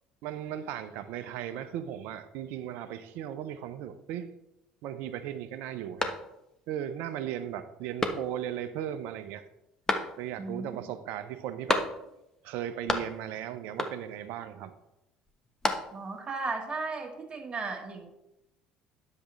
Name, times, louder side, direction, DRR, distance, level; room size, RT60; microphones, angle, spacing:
voice 1, 0.2-4.3 4.8-6.2 6.7-9.4 10.2-11.8 12.4-14.7, right 10 dB, 65° right, 11 dB, 0.7 m, -37 dB
sound 1, 6.0-6.7 7.1-7.2 8.0-8.6 9.9-10.5 11.7-12.3 12.5-13.4 13.8-14.3 15.3-16.2, left 2 dB, 20° left, 1.2 m, -32 dB
voice 2, 10.4-10.8 15.9-18.1, right 3 dB, 30° right, 3 dB, 1.8 m, -35 dB
10.0 x 7.4 x 3.2 m, 0.88 s
hypercardioid pair, 60°, 3 cm